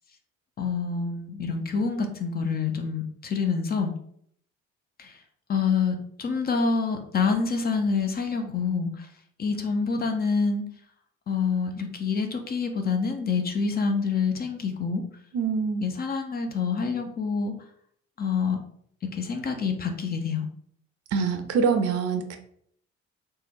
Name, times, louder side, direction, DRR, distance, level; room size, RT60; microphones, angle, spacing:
voice 1, 0.6-3.9 5.0-5.2 5.5-9.1 9.4-10.6 11.3-15.0 15.8-17.5 18.2-18.6 19.0-20.5, left 5 dB, 25° left, 5 dB, 0.5 m, -27 dB
voice 2, 15.3-15.9 21.1-22.4, right 5 dB, 40° right, 6 dB, 0.6 m, -25 dB
3.2 x 2.2 x 3.1 m, 0.66 s
figure-of-eight pair, 45°, 39 cm